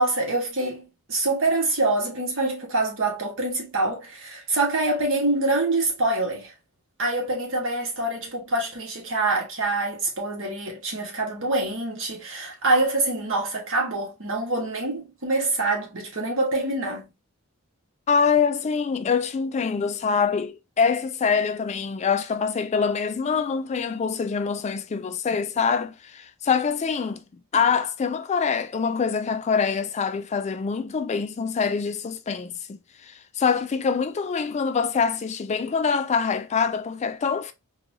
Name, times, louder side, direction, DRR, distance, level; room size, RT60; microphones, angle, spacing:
voice 1, 0.0-6.5 7.0-17.1, right 2 dB, 65° right, 1.4 m, -25 dB
voice 2, 18.1-27.2 27.5-32.8 33.0-37.5, left 6 dB, 30° left, 0.3 m, -25 dB
4.0 x 2.4 x 2.7 m
head